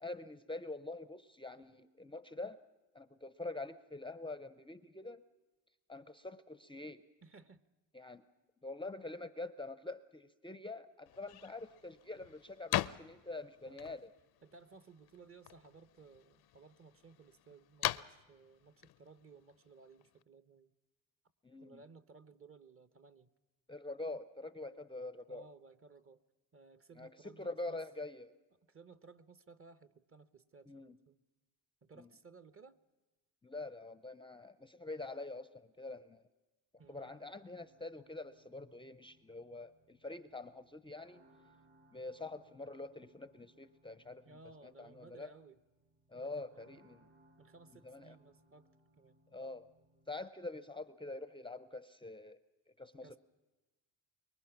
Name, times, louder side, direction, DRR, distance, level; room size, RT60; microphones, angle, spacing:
voice 1, 0.0-2.6 2.9-5.2 5.9-7.0 7.9-8.2 8.6-14.1 21.4-21.8 23.7-25.5 27.0-28.3 30.7-31.0 32.0-32.1 33.4-36.2 36.9-41.2 41.9-45.3 46.1-47.1 47.8-48.2 49.3-49.7 50.1-52.4 52.8-53.2, left 2 dB, 10° left, 12 dB, 0.6 m, -45 dB
voice 2, 7.2-7.6 13.6-14.0 14.4-20.7 21.6-23.3 25.3-26.2 26.5-27.8 28.7-31.2 31.8-32.8 36.8-37.1 44.2-45.6 46.1-47.0 47.4-48.7 48.9-49.2 53.0-53.2, right 4 dB, 30° right, 13 dB, 0.9 m, -59 dB
sound 1, 11.1-20.2, left 14 dB, 55° left, 0.6 m, -43 dB
sound 2, 36.8-50.2, right 1 dB, 70° right, 7.3 m, -69 dB
24.5 x 22.5 x 5.9 m, 1.1 s
cardioid pair, 90°, 45 cm